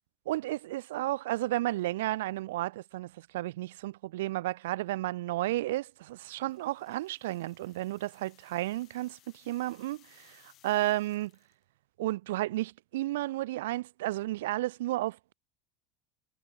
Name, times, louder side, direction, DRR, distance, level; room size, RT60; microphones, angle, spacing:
voice 1, 0.3-11.3 12.0-15.3, right 16 dB, 85° right, 0.8 m, -32 dB
sound 1, 6.1-11.6, left 14 dB, 45° left, 6.6 m, -64 dB
supercardioid pair, 125°, 0 cm